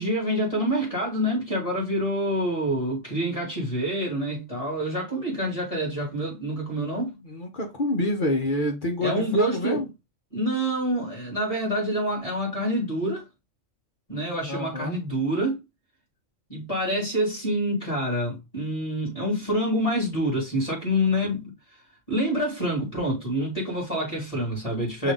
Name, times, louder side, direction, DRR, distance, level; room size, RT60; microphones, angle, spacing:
voice 1, 0.0-7.2 9.0-9.8 10.3-13.2 14.1-15.6 16.5-21.5 22.1-25.1, equal, 25° left, 2.2 m, -27 dB
voice 2, 7.2-9.9 14.5-15.0 25.0-25.1, left 1 dB, 45° left, 1.1 m, -27 dB
5.7 x 2.6 x 3.5 m
omnidirectional pair, 1.3 m